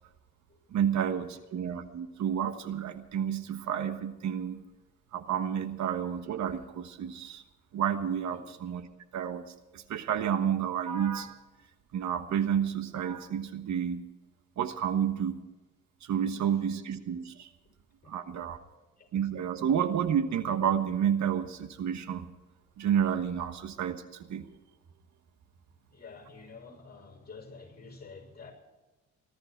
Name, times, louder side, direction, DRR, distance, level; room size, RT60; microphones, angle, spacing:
voice 1, 0.7-4.6 5.1-7.4 7.7-8.9 9.1-9.4 9.7-11.4 11.9-14.0 14.6-15.4 16.0-17.5 18.1-18.6 19.1-22.3 22.8-24.0 24.3-24.4, right 8 dB, 70° right, 10 dB, 1.2 m, -30 dB
voice 2, 25.9-28.5, left 4 dB, 30° left, 4 dB, 6.5 m, -48 dB
19.5 x 14.0 x 4.6 m, 1.1 s
cardioid pair, 90°, 30 cm